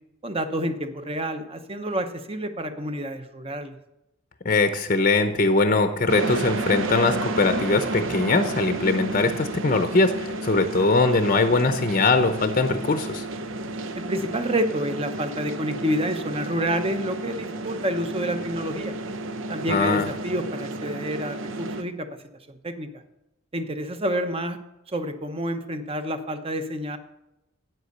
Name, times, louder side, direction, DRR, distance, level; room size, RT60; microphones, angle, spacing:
voice 1, 0.2-3.8 14.0-18.9 19.5-22.2 22.5-23.0 23.5-24.6 24.9-27.0, equal, 30° right, 8 dB, 0.9 m, -28 dB
voice 2, 4.4-13.3 19.7-20.1, left 3 dB, 40° left, 8 dB, 0.7 m, -21 dB
sound 1, 6.1-21.8, right 2 dB, 70° right, 0.7 m, -32 dB
9.3 x 7.9 x 6.7 m, 0.90 s
head